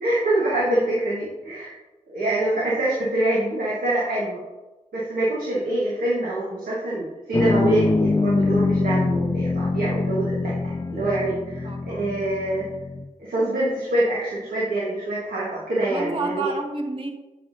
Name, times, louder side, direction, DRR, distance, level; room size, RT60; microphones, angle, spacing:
voice 1, 0.0-1.7 2.1-4.4 4.9-12.7 13.2-16.5, right 1 dB, 90° right, -6 dB, 1.5 m, -25 dB
sound 1, 7.3-13.1, left 3 dB, 25° left, 0.3 m, -24 dB
voice 2, 11.6-12.1 15.8-17.1, right 3 dB, 40° right, 2 dB, 1.3 m, -30 dB
7.8 x 7.2 x 2.7 m, 1.1 s
cardioid pair, 40°, 14 cm